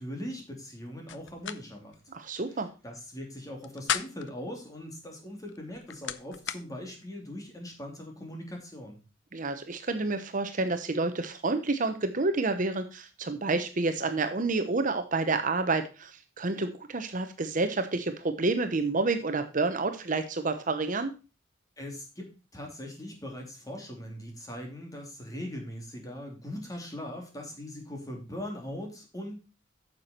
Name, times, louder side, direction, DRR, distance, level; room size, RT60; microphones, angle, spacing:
voice 1, 0.0-2.0 2.5-9.0 21.8-29.4, left 1 dB, 20° left, 2 dB, 2.9 m, -40 dB
sound 1, 1.1-1.6 1.9-2.0 3.5-4.4 5.5-6.6, left 9 dB, 65° left, 0.6 m, -34 dB
voice 2, 2.1-2.7 9.3-21.1, right 3 dB, 45° right, 8 dB, 0.9 m, -29 dB
9.4 x 6.8 x 4.3 m, 0.32 s
head